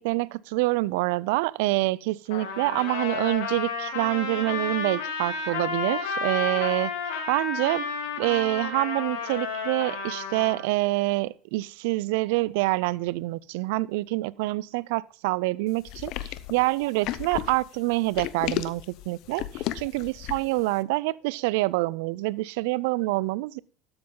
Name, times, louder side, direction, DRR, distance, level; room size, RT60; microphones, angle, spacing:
voice 1, 0.0-6.9 7.3-7.8 8.2-23.6, right 21 dB, 75° right, 0.4 m, -26 dB
Trumpet, 2.3-10.6, left 5 dB, 80° left, 2.4 m, -31 dB
sound 1, 15.9-20.6, left 14 dB, 60° left, 0.6 m, -33 dB
12.5 x 7.9 x 3.8 m
supercardioid pair, 100°, 0 cm